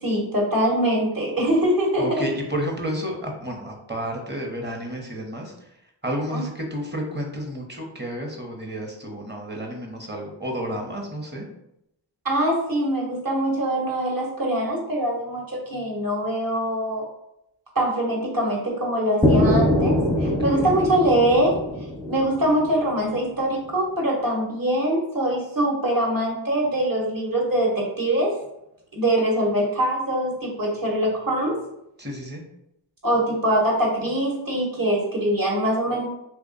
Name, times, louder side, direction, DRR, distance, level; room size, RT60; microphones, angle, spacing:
voice 1, 0.0-2.2 6.3-6.4 12.2-17.0 17.7-21.6 22.1-28.3 28.9-31.6 33.0-36.1, right 1 dB, 45° right, -2 dB, 1.4 m, -23 dB
voice 2, 2.0-5.5 6.0-11.4 20.2-20.6 32.0-32.4, equal, 20° right, 1 dB, 1.0 m, -31 dB
sound 1, 19.2-23.1, left 1 dB, 10° left, 0.6 m, -22 dB
3.2 x 2.4 x 4.0 m, 0.82 s
cardioid pair, 55°, 47 cm